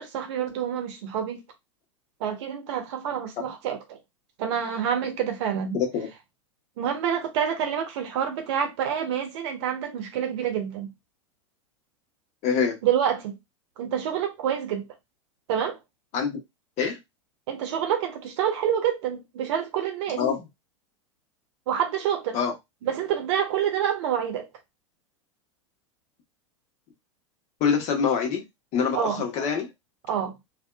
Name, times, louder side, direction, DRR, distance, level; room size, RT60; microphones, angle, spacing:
voice 1, 0.0-1.4 2.2-4.0 4.4-5.8 6.8-10.9 12.8-13.4 13.8-14.9 15.5-15.8 17.5-20.2 21.7-22.4 22.8-24.5 28.9-29.2 30.1-30.4, right 9 dB, 60° right, 0.8 m, -27 dB
voice 2, 5.7-6.1 12.4-12.8 16.1-16.4 16.8-17.0 20.2-20.4 22.3-22.5 27.6-28.4 28.7-29.7, left 6 dB, 45° left, 1.1 m, -25 dB
2.6 x 2.4 x 2.3 m
hypercardioid pair, 90°, 16 cm